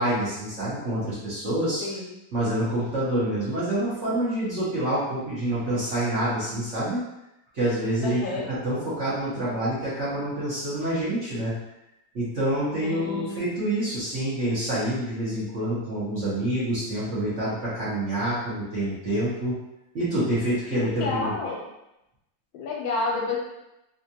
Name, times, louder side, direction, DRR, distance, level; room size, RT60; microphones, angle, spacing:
voice 1, 0.0-1.8 2.3-7.0 7.5-8.2 8.6-11.6 12.1-19.5 19.9-21.3, right 1 dB, 45° right, -10 dB, 1.1 m, -27 dB
voice 2, 1.8-2.1 8.0-8.5 12.8-13.4 20.7-21.6 22.5-23.4, left 3 dB, 80° left, -2 dB, 1.5 m, -30 dB
3.5 x 2.5 x 2.8 m, 0.90 s
omnidirectional pair, 2.1 m